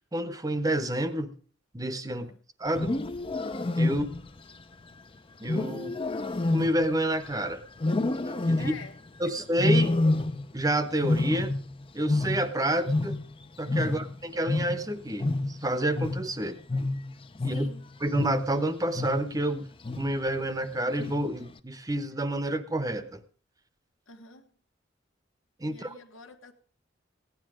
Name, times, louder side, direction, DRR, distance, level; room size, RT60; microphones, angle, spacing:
voice 1, 0.1-1.3 1.7-2.3 2.6-3.0 3.8-4.0 5.4-6.0 6.5-7.6 8.5-8.7 9.2-10.0 10.5-11.5 11.9-13.2 13.6-16.6 17.4-17.7 18.0-19.7 20.0-23.2 25.6-25.9, right 1 dB, 20° right, 0.8 m, -29 dB
Wild animals, 2.7-4.4 5.5-7.3 7.8-9.0 9.6-10.6 10.9-13.4 13.7-18.6 18.9-19.4 19.8-20.3 21.0-21.4, left 2 dB, 25° left, 0.6 m, -28 dB
voice 2, 8.5-9.0 9.2-9.3 17.4-17.8 24.1-24.5 25.6-26.5, left 3 dB, 90° left, 1.7 m, -47 dB
15.5 x 9.8 x 4.9 m
head